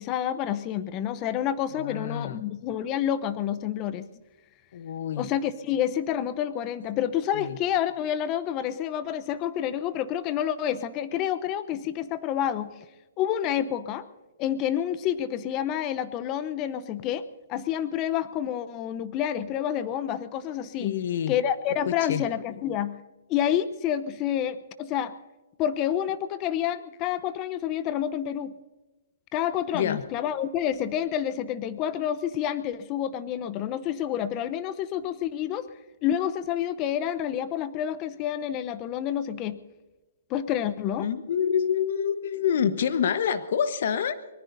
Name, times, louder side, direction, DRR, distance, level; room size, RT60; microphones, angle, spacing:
voice 1, 0.0-4.1 5.2-12.7 13.2-14.1 14.4-17.2 17.5-21.0 21.3-23.0 23.3-25.1 25.6-28.5 29.3-35.7 36.0-39.6 40.3-41.1, left 10 dB, 25° left, 14 dB, 0.8 m, -28 dB
voice 2, 1.8-2.4 4.7-5.3 7.3-7.6 20.8-21.3 21.8-22.2 29.7-30.0 41.0-44.2, left 8 dB, 60° left, 11 dB, 1.2 m, -27 dB
24.5 x 19.5 x 2.7 m, 1.1 s
hypercardioid pair, 145°, 0 cm